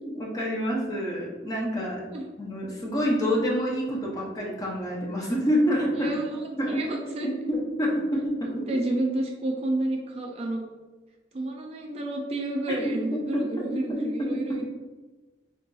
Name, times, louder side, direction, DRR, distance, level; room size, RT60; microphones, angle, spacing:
voice 1, 0.0-2.0 2.4-6.2 6.6-6.8 7.2-8.8 12.8-14.4, equal, 20° left, -4 dB, 0.7 m, -27 dB
voice 2, 5.9-7.3 8.5-10.6 11.3-14.7, right 1 dB, 35° right, 1 dB, 0.3 m, -30 dB
3.6 x 2.7 x 2.3 m, 1.3 s
head